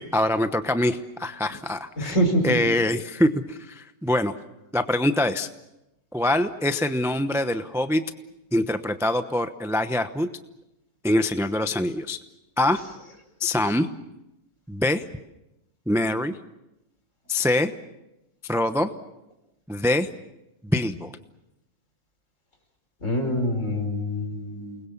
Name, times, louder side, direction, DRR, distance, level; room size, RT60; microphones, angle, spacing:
voice 1, 0.0-2.2 2.4-4.3 4.7-5.5 6.1-8.0 8.5-10.3 11.0-12.2 12.6-12.8 13.4-13.9 14.7-15.0 15.9-16.4 17.3-17.7 18.5-18.9 19.7-20.1 20.6-21.1, left 1 dB, ahead, 9 dB, 0.7 m, -24 dB
voice 2, 2.0-2.6 23.0-24.8, equal, 55° left, 4 dB, 5.4 m, -25 dB
29.0 x 21.0 x 7.3 m, 0.92 s
omnidirectional pair, 1.6 m